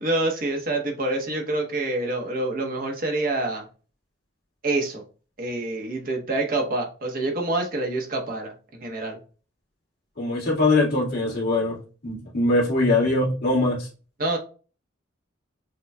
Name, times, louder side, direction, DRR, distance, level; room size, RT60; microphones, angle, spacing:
voice 1, 0.0-3.6 4.6-5.0 5.4-9.2 14.2-14.4, right 2 dB, 45° right, 2 dB, 0.9 m, -27 dB
voice 2, 10.2-11.8 12.0-13.8, left 2 dB, 55° left, -4 dB, 1.8 m, -22 dB
6.6 x 2.2 x 2.2 m, 0.36 s
head